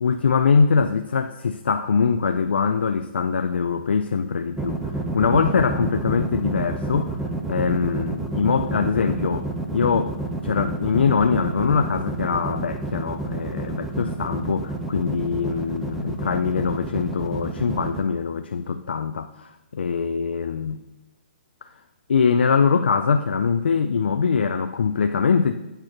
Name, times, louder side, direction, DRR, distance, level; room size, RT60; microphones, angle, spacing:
voice 1, 0.0-4.8 5.1-7.2 7.5-10.2 10.4-20.8 22.1-25.5, left 5 dB, 90° left, 7 dB, 0.4 m, -22 dB
sound 1, 4.6-18.0, right 2 dB, 5° right, 0.5 m, -29 dB
8.7 x 3.0 x 6.4 m, 1.0 s
hypercardioid pair, 150°, 6 cm